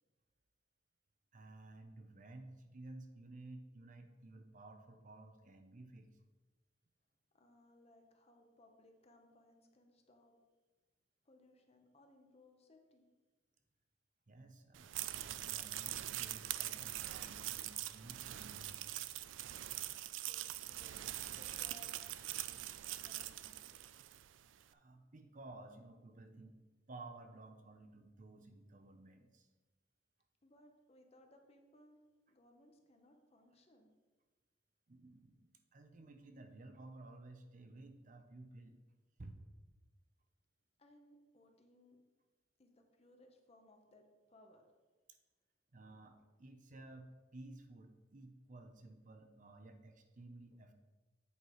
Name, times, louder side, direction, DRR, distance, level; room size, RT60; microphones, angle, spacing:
voice 1, 1.3-6.2 14.3-19.0 24.7-26.6 26.9-29.5 34.9-38.8 39.2-39.4 45.1-45.2 45.7-50.7, right 2 dB, 45° right, 6 dB, 0.7 m, -55 dB
voice 2, 7.3-10.3 11.2-13.0 20.2-24.0 30.4-32.0 32.3-33.9 40.8-42.0 42.6-44.7, left 1 dB, 35° left, 4 dB, 0.9 m, -65 dB
sound 1, 14.8-24.3, right 14 dB, 90° right, 0.3 m, -43 dB
8.2 x 4.6 x 4.8 m, 1.2 s
head